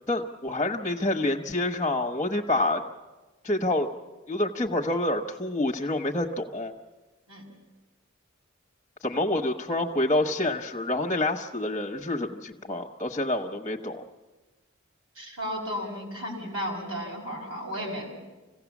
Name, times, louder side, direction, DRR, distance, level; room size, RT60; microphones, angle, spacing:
voice 1, 0.1-2.8 3.4-3.9 4.3-6.7 9.0-14.0, left 1 dB, 15° left, 3 dB, 1.0 m, -27 dB
voice 2, 15.2-18.1, equal, 85° right, -1 dB, 6.0 m, -34 dB
26.0 x 16.5 x 7.2 m, 1.2 s
head